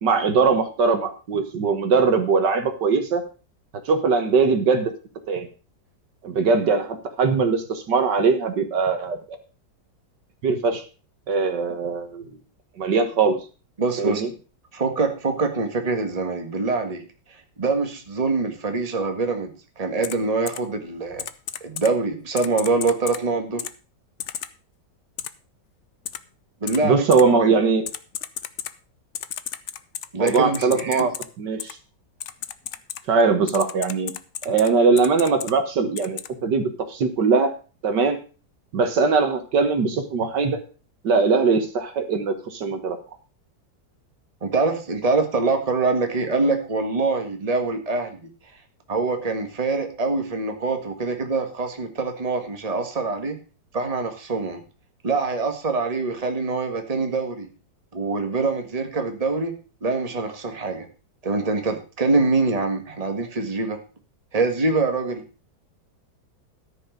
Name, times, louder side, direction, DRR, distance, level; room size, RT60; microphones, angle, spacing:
voice 1, 0.0-3.2 3.9-4.9 5.3-5.5 6.2-9.2 10.4-10.8 11.3-12.3 12.8-13.4 14.0-14.3 26.8-27.8 30.2-31.1 31.4-31.8 33.1-34.1 34.5-37.5 37.8-38.2 38.7-40.6 41.0-43.0, right 4 dB, 70° right, 8 dB, 1.9 m, -21 dB
voice 2, 13.8-14.2 14.7-17.0 17.3-21.2 21.6-23.6 26.6-27.6 30.1-31.1 44.4-48.3 48.9-53.4 53.7-54.6 55.0-57.5 57.9-60.9 61.2-63.8 64.3-65.2, right 3 dB, 20° right, 5 dB, 1.7 m, -24 dB
Typing, 20.0-20.1 20.5-20.6 21.2-21.9 22.4-23.2 23.6-23.7 24.2-24.5 25.2-25.3 26.1-26.2 26.7-26.8 27.1-27.2 27.9-28.7 29.1-31.2 31.6-31.7 32.2-33.0 33.5-34.7 35.0-35.5 36.0-36.3, left 10 dB, 60° left, 0.8 m, -32 dB
13.5 x 5.5 x 6.7 m, 0.35 s
omnidirectional pair, 1.9 m